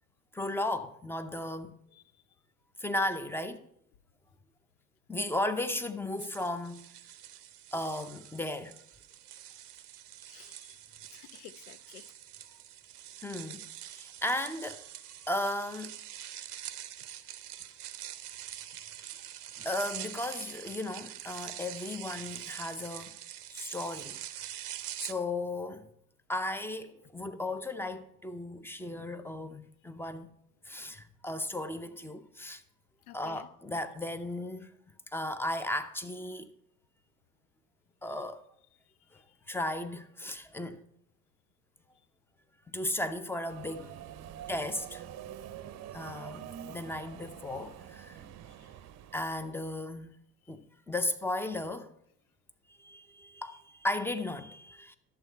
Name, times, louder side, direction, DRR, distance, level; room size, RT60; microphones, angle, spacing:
voice 1, 0.3-1.8 2.8-3.6 5.1-6.8 7.7-8.8 13.2-14.8 15.3-15.9 19.6-23.2 23.5-24.2 25.0-25.9 26.3-30.3 30.7-32.6 33.1-34.7 35.1-36.5 38.0-38.4 39.5-40.8 42.7-44.0 44.5-45.0 45.9-48.2 49.1-50.2 50.5-51.9 52.8-54.9, left 1 dB, 5° left, 0.6 m, -35 dB
sound 1, 6.2-25.1, right 11 dB, 85° right, 0.7 m, -45 dB
voice 2, 10.2-10.8 11.1-12.1 15.2-15.3 33.1-33.5 39.1-39.4 48.5-48.7, left 13 dB, 75° left, 0.6 m, -53 dB
Subway metro underground, 43.5-49.7, right 10 dB, 35° right, 0.7 m, -46 dB
11.0 x 7.1 x 4.5 m
hypercardioid pair, 70°, 45 cm